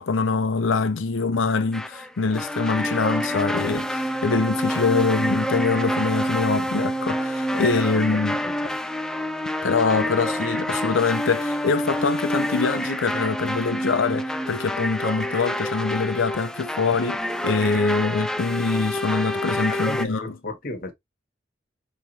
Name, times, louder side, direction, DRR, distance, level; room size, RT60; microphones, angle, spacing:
voice 1, 0.0-8.4 9.6-20.2, left 4 dB, 85° left, 0.6 m, -24 dB
sound 1, 1.7-20.0, equal, 5° left, 0.3 m, -27 dB
voice 2, 8.1-8.8 19.7-20.9, left 2 dB, 50° left, 1.2 m, -34 dB
5.0 x 3.0 x 2.8 m
head